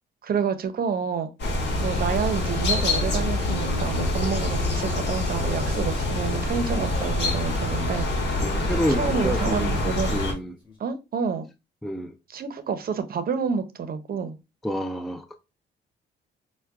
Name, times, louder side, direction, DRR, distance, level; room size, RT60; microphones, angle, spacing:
voice 1, 0.2-1.3 1.8-8.1 8.9-10.2 10.8-11.5 12.3-14.4, right 6 dB, 50° right, 0.6 m, -28 dB
sound 1, 1.4-10.3, left 2 dB, 60° left, 1.4 m, -26 dB
sound 2, 2.5-7.8 8.4-10.7, left 2 dB, 25° left, 2.1 m, -41 dB
voice 2, 8.4-10.6 11.8-12.1 14.6-15.4, equal, ahead, 0.3 m, -29 dB
5.6 x 2.2 x 2.4 m
cardioid pair, 90°, 20 cm